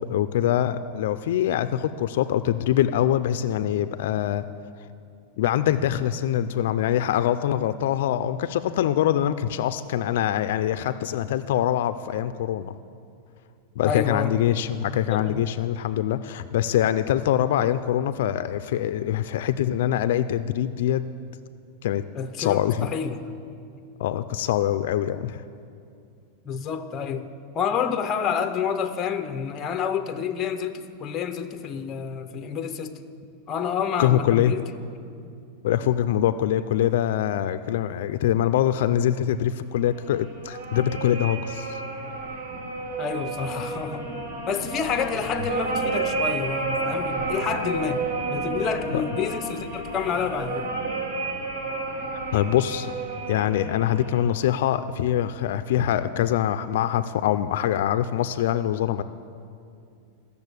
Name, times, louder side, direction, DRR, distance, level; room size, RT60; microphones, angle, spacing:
voice 1, 0.1-4.4 5.4-12.7 13.8-21.0 21.8-22.0 22.4-22.9 24.0-25.4 34.0-34.5 35.6-41.8 48.9-49.0 52.3-52.9 53.3-59.0, left 11 dB, 65° left, 12 dB, 0.4 m, -24 dB
voice 2, 13.8-14.4 15.1-15.4 22.1-23.2 26.4-27.3 27.5-33.0 33.5-34.6 43.0-44.0 44.5-48.0 48.3-50.7, left 7 dB, 20° left, 9 dB, 0.6 m, -29 dB
sound 1, 39.9-54.2, right 3 dB, 85° right, 2.5 m, -31 dB
14.0 x 6.9 x 8.1 m, 2.4 s
supercardioid pair, 165°, 0 cm